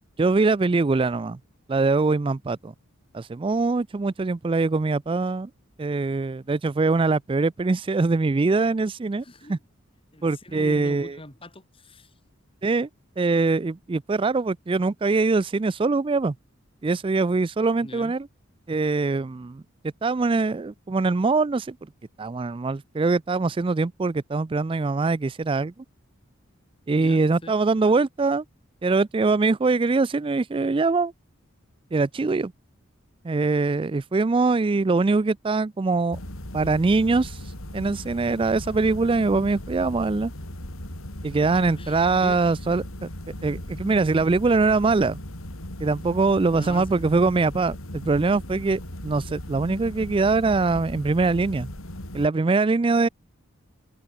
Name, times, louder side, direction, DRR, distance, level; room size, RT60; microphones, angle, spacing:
voice 1, 0.2-1.4 1.7-2.7 3.1-5.5 5.8-9.6 10.2-11.2 12.6-12.9 13.2-16.3 16.8-18.3 18.7-19.6 20.0-21.8 22.2-25.7 26.9-28.4 28.8-31.1 31.9-32.5 33.2-36.2 36.5-37.4 37.7-40.3 41.2-43.1 43.4-45.2 45.8-51.7 52.1-53.1, right 3 dB, 25° right, 0.4 m, -23 dB
voice 2, 9.2-9.6 10.1-12.1 17.8-18.1 27.0-27.6 41.4-42.7 46.5-47.3, left 1 dB, 25° left, 6.8 m, -42 dB
sound 1, 36.1-52.3, left 1 dB, 85° left, 5.1 m, -38 dB
head